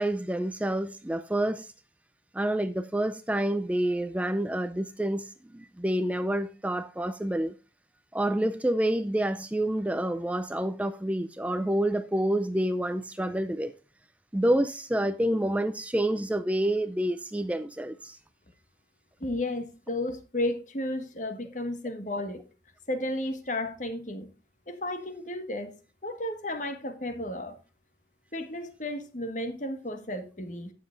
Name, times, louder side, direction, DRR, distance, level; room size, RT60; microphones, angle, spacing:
voice 1, 0.0-1.7 2.3-7.5 8.1-13.7 14.3-18.2, right 1 dB, 10° right, 0.4 m, -28 dB
voice 2, 19.2-22.4 22.9-24.3 24.7-25.7 26.0-27.6 28.3-30.7, left 1 dB, 45° left, 1.6 m, -33 dB
17.0 x 7.4 x 2.5 m
head